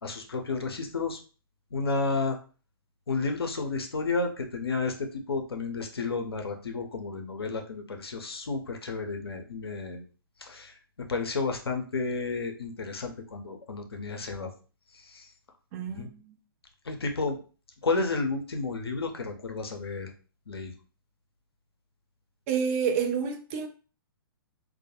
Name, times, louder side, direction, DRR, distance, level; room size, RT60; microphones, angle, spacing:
voice 1, 0.0-1.2 1.7-2.4 3.1-10.0 10.4-10.7 11.1-14.5 15.1-15.3 15.9-16.1 16.9-17.4 17.8-20.1 20.5-20.7, left 3 dB, 85° left, 0.6 m, -31 dB
voice 2, 15.7-16.3 22.5-23.7, right 7 dB, 35° right, 0.5 m, -29 dB
2.2 x 2.1 x 2.8 m
hypercardioid pair, 125°, 12 cm